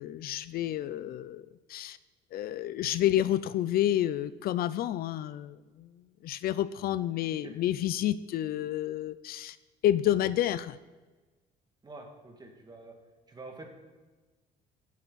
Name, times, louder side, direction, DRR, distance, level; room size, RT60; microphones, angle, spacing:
voice 1, 0.0-2.0 2.3-9.6 9.8-10.8, left 12 dB, 65° left, 16 dB, 0.5 m, -30 dB
voice 2, 11.8-12.9 13.3-13.7, right 2 dB, 25° right, 2 dB, 2.2 m, -47 dB
16.0 x 8.5 x 4.1 m, 1.3 s
cardioid pair, 110°, 17 cm